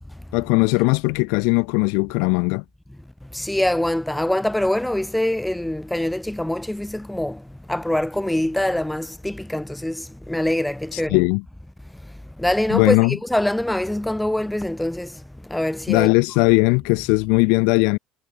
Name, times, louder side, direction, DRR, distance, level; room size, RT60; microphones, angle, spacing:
voice 1, 0.3-2.6 10.9-11.4 12.7-13.2 15.9-18.0, left 35 dB, 85° left, 1.2 m, -19 dB
voice 2, 3.2-11.2 12.0-16.1, left 1 dB, 5° left, 0.4 m, -24 dB
cardioid pair, 150°, 0 cm